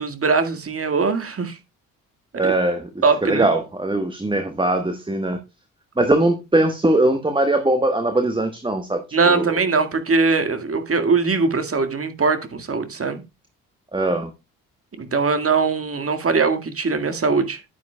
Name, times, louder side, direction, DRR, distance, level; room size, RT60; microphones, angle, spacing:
voice 1, 0.0-1.6 2.4-2.5 3.0-3.5 9.1-13.2 15.0-17.6, right 4 dB, 35° right, 2.0 m, -21 dB
voice 2, 2.4-2.9 3.2-5.4 6.0-9.6 13.9-14.3, right 2 dB, 10° right, 1.3 m, -21 dB
11.0 x 9.1 x 2.3 m
figure-of-eight pair, 45°, 41 cm